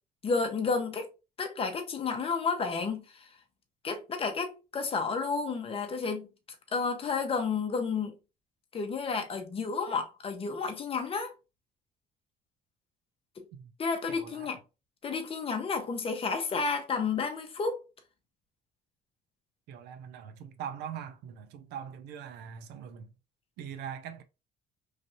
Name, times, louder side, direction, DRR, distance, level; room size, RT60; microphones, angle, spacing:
voice 1, 0.2-1.1 1.4-3.3 3.8-6.3 6.7-8.1 8.7-11.3 13.4-13.5 13.8-14.6 15.0-17.8, left 5 dB, 35° left, 0.8 m, -31 dB
voice 2, 14.1-14.6 19.7-23.1 23.6-24.2, right 8 dB, 80° right, 0.5 m, -42 dB
3.2 x 2.6 x 2.7 m
cardioid pair, 110°, 17 cm